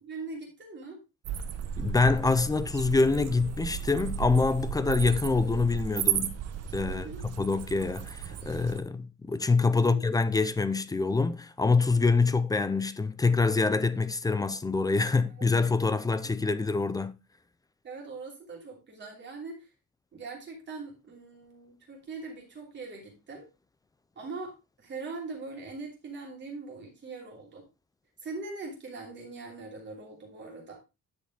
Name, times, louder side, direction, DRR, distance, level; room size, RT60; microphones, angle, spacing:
voice 1, 0.0-1.0 6.9-7.2 9.7-10.0 15.4-15.5 17.8-19.7 20.1-23.5 24.1-27.7 28.2-30.8, right 3 dB, 35° right, 3.0 m, -41 dB
sound 1, 1.2-8.8, right 8 dB, 50° right, 0.8 m, -34 dB
voice 2, 1.8-6.4 6.7-17.1, left 4 dB, 10° left, 0.3 m, -26 dB
10.0 x 5.3 x 3.6 m
cardioid pair, 180°, 32 cm